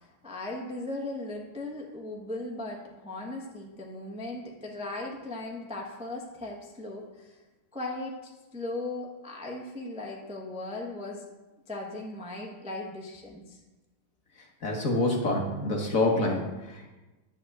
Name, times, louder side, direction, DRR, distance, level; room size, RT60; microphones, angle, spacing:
voice 1, 0.2-7.3 7.7-11.2 11.7-13.6, left 2 dB, 5° right, -1 dB, 0.8 m, -37 dB
voice 2, 14.6-16.9, left 2 dB, 45° left, 1 dB, 1.3 m, -27 dB
11.0 x 4.3 x 7.9 m, 1.1 s
omnidirectional pair, 2.3 m